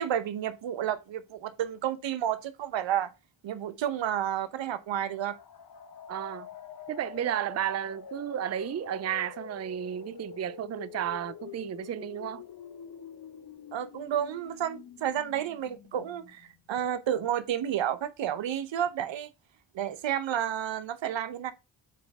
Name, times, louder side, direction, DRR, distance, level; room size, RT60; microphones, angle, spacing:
voice 1, 0.0-3.1 3.4-5.4 13.7-19.3 19.7-21.5, right 10 dB, 70° right, 0.8 m, -31 dB
sound 1, 4.9-16.6, left 8 dB, 50° left, 0.9 m, -46 dB
voice 2, 6.1-6.5 6.9-12.4, right 10 dB, 35° right, 0.5 m, -33 dB
8.3 x 3.4 x 3.6 m
cardioid pair, 65°, 46 cm